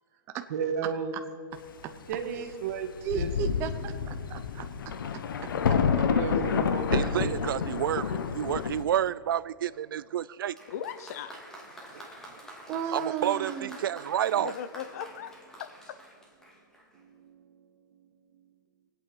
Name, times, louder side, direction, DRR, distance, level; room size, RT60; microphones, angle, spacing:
voice 1, 0.5-1.1 2.1-3.3 6.1-7.3 16.9-17.4, right 6 dB, 50° right, 1.7 m, -33 dB
Thunder, 2.7-2.8 3.1-8.8, left 6 dB, 80° left, 1.0 m, -28 dB
voice 2, 3.0-4.7 12.7-13.8, right 8 dB, 20° right, 0.6 m, -34 dB
voice 3, 6.9-10.6 11.9-12.4 12.9-14.5, right 10 dB, 90° right, 0.4 m, -30 dB
Applause, 10.5-17.0, equal, 5° left, 2.0 m, -48 dB
voice 4, 10.7-11.4 14.4-15.3 15.6-16.0, left 9 dB, 45° left, 0.7 m, -38 dB
23.0 x 8.6 x 5.4 m
hypercardioid pair, 165°, 11 cm